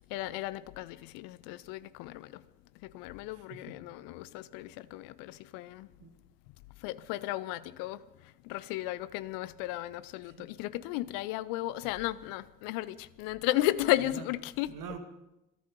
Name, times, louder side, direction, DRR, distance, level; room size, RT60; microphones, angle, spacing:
voice 1, 0.1-2.4 2.8-5.9 6.8-14.8, left 16 dB, 65° left, 0.6 m, -34 dB
voice 2, 3.3-3.8 6.0-6.1 10.3-10.5 14.0-14.2 14.7-15.0, right 6 dB, 55° right, 1.9 m, -45 dB
20.0 x 13.5 x 5.3 m
figure-of-eight pair, 40°, 37 cm